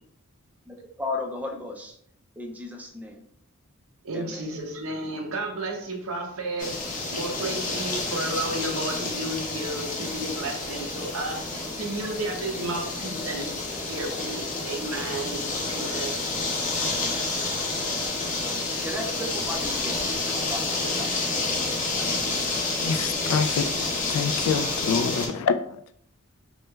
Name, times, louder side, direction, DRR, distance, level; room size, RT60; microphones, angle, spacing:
voice 1, 0.7-2.0 2.4-3.3 4.1-4.6 17.0-17.3 18.4-22.4 25.2-25.4, left 2 dB, 5° right, 2 dB, 0.4 m, -37 dB
voice 2, 4.0-13.5 13.8-15.4 15.7-16.1, right 2 dB, 70° right, 2 dB, 0.7 m, -32 dB
sound 1, 6.6-25.3, left 3 dB, 40° left, 0.7 m, -29 dB
voice 3, 22.8-23.8 24.1-25.8, left 6 dB, 80° left, 12 dB, 0.3 m, -26 dB
3.1 x 3.1 x 2.2 m, 0.67 s
head